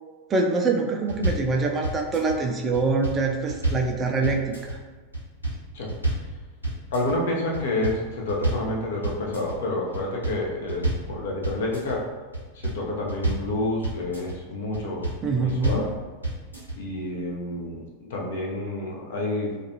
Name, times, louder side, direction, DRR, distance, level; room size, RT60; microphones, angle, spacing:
voice 1, 0.3-4.8 15.2-15.9, right 3 dB, 25° right, 2 dB, 0.3 m, -25 dB
sound 1, 1.1-1.5 1.8-2.4 2.7-3.9 4.2-4.8 5.1-5.6 5.9-6.3 6.6-7.2 7.5-8.7 9.0-9.6 9.9-11.1 11.4-12.0 12.3-13.5 13.8-14.4 14.7-15.2 15.5-15.9 16.2-16.8, right 2 dB, 90° left, 1.2 m, -28 dB
voice 2, 6.9-12.1 12.5-15.9 16.8-19.6, left 2 dB, 55° left, -1 dB, 0.6 m, -29 dB
2.4 x 2.3 x 2.7 m, 1.4 s
figure-of-eight pair, 90°, 0 cm